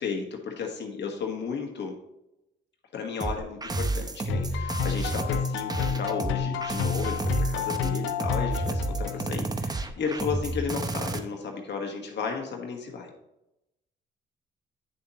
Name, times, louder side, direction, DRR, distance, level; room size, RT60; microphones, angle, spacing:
voice 1, 0.0-1.9 2.9-13.1, left 5 dB, 60° left, 1 dB, 1.6 m, -34 dB
sound 1, 3.2-11.2, right 2 dB, 20° right, 0.7 m, -30 dB
sound 2, 4.3-9.5, left 8 dB, 85° left, 0.6 m, -31 dB
8.4 x 6.9 x 3.0 m, 0.89 s
cardioid pair, 90°, 20 cm